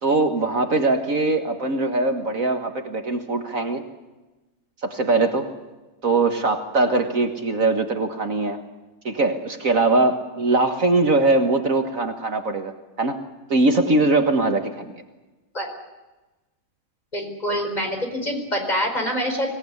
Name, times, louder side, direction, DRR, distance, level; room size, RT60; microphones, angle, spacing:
voice 1, 0.0-3.8 4.8-5.5 6.0-8.6 9.1-12.7 13.0-13.2 13.5-15.0, right 3 dB, 55° right, 6 dB, 2.0 m, -21 dB
voice 2, 17.1-19.5, equal, 25° left, 4 dB, 4.8 m, -25 dB
25.0 x 18.0 x 9.7 m, 1.1 s
omnidirectional pair, 1.7 m